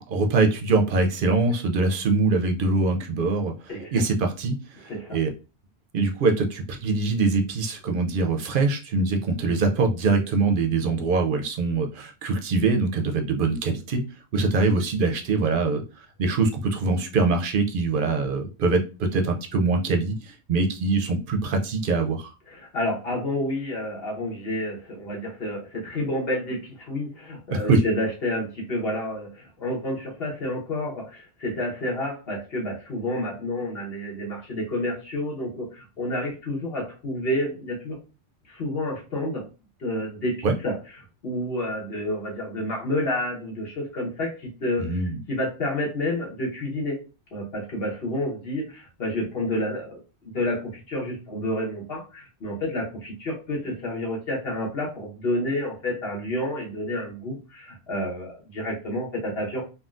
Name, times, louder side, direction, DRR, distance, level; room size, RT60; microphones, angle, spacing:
voice 1, 0.1-3.5 3.9-5.3 5.9-14.0 14.3-15.8 16.2-22.3 27.5-27.8 40.4-40.6 44.8-45.2, right 3 dB, 60° right, 4 dB, 0.7 m, -23 dB
voice 2, 4.9-5.2 22.5-38.0 38.5-39.5 39.8-40.8 41.2-45.0 45.3-47.0 47.3-50.0 50.3-59.6, left 1 dB, 65° left, -2 dB, 1.3 m, -29 dB
3.7 x 2.2 x 2.4 m, 0.32 s
omnidirectional pair, 1.1 m